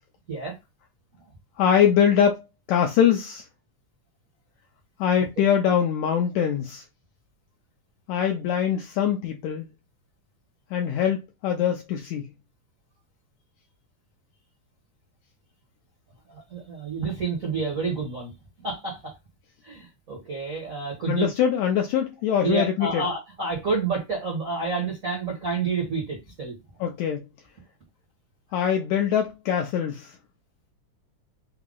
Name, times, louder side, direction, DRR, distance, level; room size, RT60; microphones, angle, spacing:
voice 1, 1.6-3.4 5.0-6.8 8.1-9.7 10.7-12.3 21.1-23.0 26.8-27.3 28.5-30.1, left 8 dB, 85° left, 1.6 m, -23 dB
voice 2, 16.3-18.3 18.6-19.1 19.6-21.3 22.4-26.5, right 4 dB, 90° right, 0.7 m, -29 dB
5.5 x 2.0 x 3.7 m
omnidirectional pair, 3.8 m